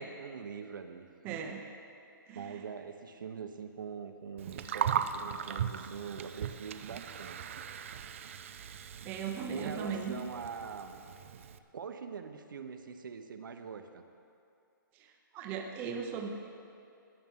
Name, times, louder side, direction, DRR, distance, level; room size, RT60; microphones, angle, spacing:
voice 1, 0.0-1.4 2.3-7.5 9.0-9.1 9.5-11.0 11.7-14.0, right 6 dB, 70° right, 7 dB, 1.0 m, -43 dB
voice 2, 1.2-1.6 2.3-2.6 9.0-10.2 14.9-16.3, right 6 dB, 15° right, 3 dB, 0.8 m, -38 dB
Gurgling, 4.4-11.6, right 8 dB, 35° right, 0.4 m, -38 dB
17.0 x 11.0 x 3.7 m, 2.5 s
hypercardioid pair, 170°, 11 cm